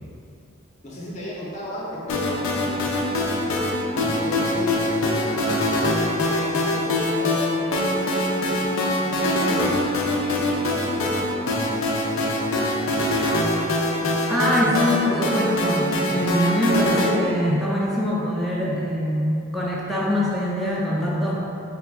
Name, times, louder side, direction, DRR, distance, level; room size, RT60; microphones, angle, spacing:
voice 1, 0.8-3.2 3.9-7.7 8.5-8.7 9.0-13.3, equal, 35° left, -5 dB, 0.7 m, -36 dB
sound 1, 2.1-17.1, left 1 dB, 80° left, 0.5 m, -23 dB
voice 2, 14.3-21.4, equal, ahead, -6 dB, 0.4 m, -23 dB
4.7 x 2.3 x 3.5 m, 2.7 s
head